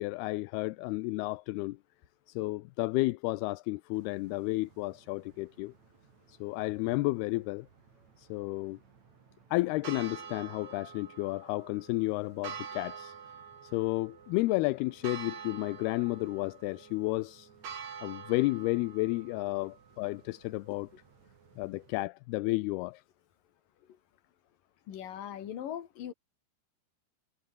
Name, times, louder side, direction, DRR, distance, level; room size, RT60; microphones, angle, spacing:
voice 1, 0.0-1.8 2.3-5.7 6.3-7.7 8.2-8.8 9.5-13.1 13.7-17.5 18.0-20.9 21.6-23.0, left 21 dB, 80° left, 2.5 m, -32 dB
sound 1, 3.9-22.0, right 7 dB, 45° right, 3.8 m, -48 dB
voice 2, 24.9-26.1, left 10 dB, 60° left, 3.6 m, -39 dB
omnidirectional pair, 4.8 m